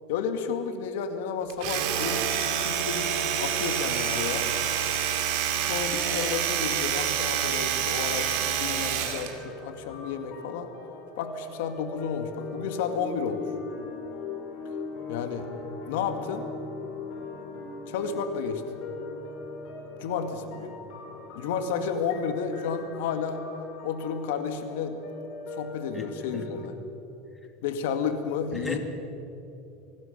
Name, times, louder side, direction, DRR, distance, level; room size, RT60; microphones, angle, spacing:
voice 1, 0.1-4.5 5.6-10.7 11.2-13.4 15.1-15.5 15.8-16.5 17.9-18.6 20.0-20.8 21.4-23.4 23.8-25.0 25.5-26.7 27.6-28.8, left 6 dB, 80° left, 7 dB, 1.9 m, -31 dB
Domestic sounds home sounds, 1.5-9.3, right 9 dB, 65° right, 2.4 m, -27 dB
sound 1, 9.0-26.6, left 4 dB, 60° left, 5.3 m, -40 dB
voice 2, 25.9-26.7 28.5-28.8, left 2 dB, 10° left, 4 dB, 2.2 m, -37 dB
23.5 x 17.5 x 6.7 m, 2.9 s
supercardioid pair, 140°, 0 cm